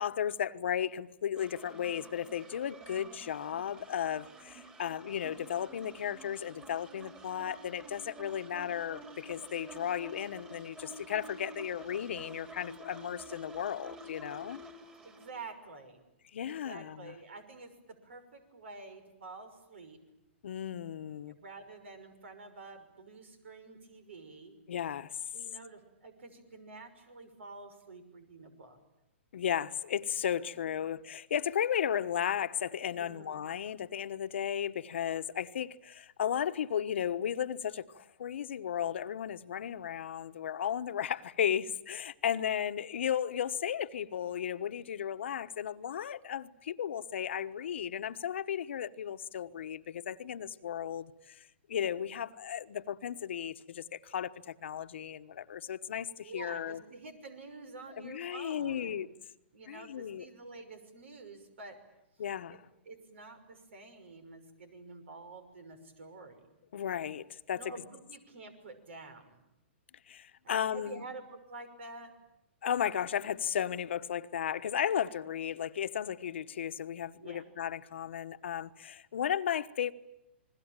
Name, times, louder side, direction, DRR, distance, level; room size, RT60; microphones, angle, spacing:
voice 1, 0.0-14.6 16.3-17.1 20.4-21.3 24.7-25.2 29.3-56.8 58.0-59.1 59.7-60.3 62.2-62.6 66.7-67.6 70.1-71.0 72.6-79.9, left 9 dB, 70° left, 1.2 m, -35 dB
sound 1, 1.4-15.3, right 2 dB, 15° right, 3.8 m, -50 dB
voice 2, 15.0-16.0 16.4-20.0 21.4-24.6 25.3-28.8 32.9-33.4 56.2-59.1 59.5-61.8 62.2-62.3 62.5-62.6 62.9-66.4 67.5-69.4 70.4-72.2 77.2-77.5, right 3 dB, 75° right, 5.8 m, -49 dB
29.0 x 21.0 x 9.0 m
hypercardioid pair, 145°, 7 cm